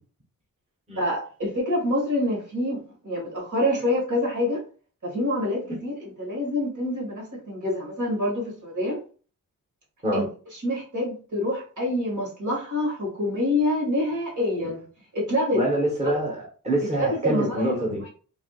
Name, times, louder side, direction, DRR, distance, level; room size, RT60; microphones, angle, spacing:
voice 1, 1.0-4.6 5.0-9.0 10.1-10.3 10.5-14.8 15.1-15.6 16.0-16.2 17.0-17.8 18.0-18.1, left 1 dB, 65° right, -3 dB, 2.0 m, -26 dB
voice 2, 15.5-18.0, right 1 dB, 20° right, -2 dB, 1.2 m, -25 dB
4.8 x 2.7 x 2.4 m, 0.39 s
wide cardioid pair, 105°, 33 cm